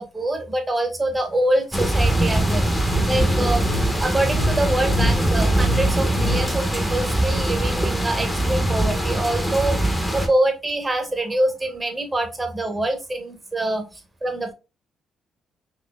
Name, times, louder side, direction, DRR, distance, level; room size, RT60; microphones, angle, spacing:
voice 1, 0.0-2.6 3.1-3.7 3.9-9.8 10.1-14.5, right 1 dB, 20° right, 5 dB, 1.1 m, -25 dB
sound 1, 1.7-10.3, right 1 dB, 5° left, 0.9 m, -22 dB
sound 2, 2.8-6.7, equal, 65° left, 0.7 m, -28 dB
4.0 x 2.9 x 2.3 m, 0.27 s
cardioid pair, 90°, 0 cm